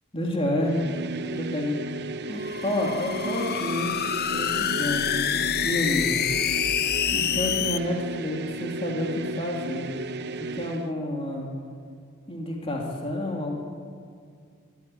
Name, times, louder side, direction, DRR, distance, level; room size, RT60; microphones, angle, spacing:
voice 1, 0.1-0.9 1.3-1.7 2.3-4.0 4.3-6.1 7.1-9.9 10.3-11.5 12.3-13.6, left 1 dB, 25° left, -1 dB, 3.1 m, -29 dB
sound 1, 0.6-10.9, right 3 dB, 50° right, 0.7 m, -35 dB
sound 2, 2.4-7.8, left 9 dB, 45° left, 0.6 m, -27 dB
24.0 x 14.5 x 9.4 m, 2.2 s
head